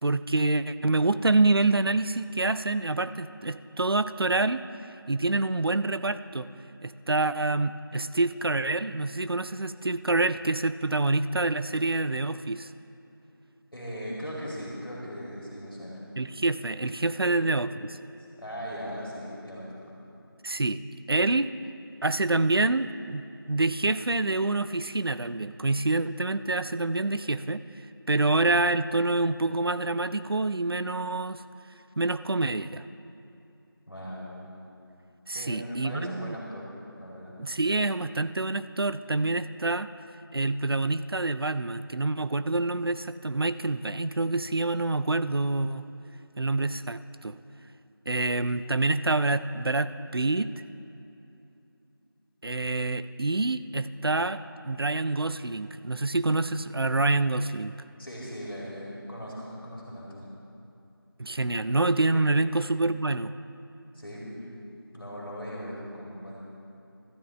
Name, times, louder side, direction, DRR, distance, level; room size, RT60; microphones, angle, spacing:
voice 1, 0.0-4.6 5.1-6.5 6.8-12.7 16.2-18.0 20.4-20.8 21.1-21.5 22.0-27.6 28.1-31.4 32.0-32.8 35.3-36.4 37.4-39.9 40.3-45.8 46.4-47.4 48.1-50.5 52.4-57.7 61.2-63.3, right 2 dB, 75° right, 13 dB, 0.5 m, -27 dB
voice 2, 13.7-16.0 17.2-17.3 18.4-19.8 33.9-34.5 35.3-36.6 37.0-37.4 58.0-60.3 62.1-62.3 63.9-64.2 64.9-66.4, equal, 65° left, -5 dB, 2.7 m, -39 dB
16.5 x 12.5 x 3.2 m, 2.8 s
figure-of-eight pair, 180°, 13 cm